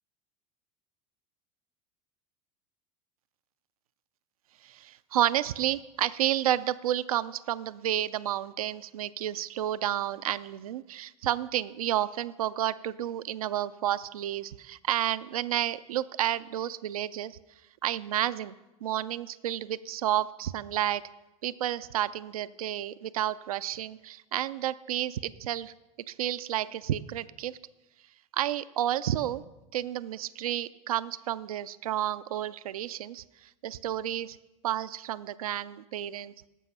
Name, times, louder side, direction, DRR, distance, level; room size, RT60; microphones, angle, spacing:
voice 1, 4.6-17.4 17.8-18.5 18.8-21.0 21.4-25.7 26.1-27.6 28.3-29.4 29.7-34.4 34.6-36.3, right 12 dB, 85° right, 15 dB, 0.4 m, -31 dB
11.5 x 7.5 x 5.4 m, 1.0 s
hypercardioid pair, 95°, 18 cm